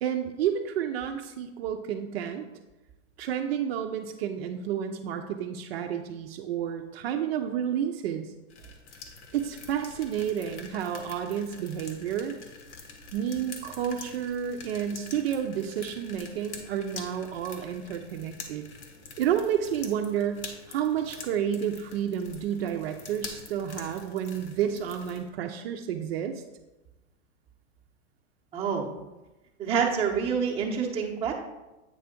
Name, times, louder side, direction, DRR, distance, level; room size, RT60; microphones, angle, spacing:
voice 1, 0.0-2.5 3.2-8.3 9.3-12.3 13.1-18.7 19.2-26.3, right 9 dB, 55° right, 4 dB, 0.6 m, -30 dB
sound 1, 8.5-25.3, left 4 dB, 65° left, 1.3 m, -46 dB
voice 2, 28.5-28.9 29.6-31.3, right 6 dB, 15° right, -2 dB, 0.8 m, -27 dB
8.4 x 3.4 x 5.1 m, 1.0 s
supercardioid pair, 155°, 37 cm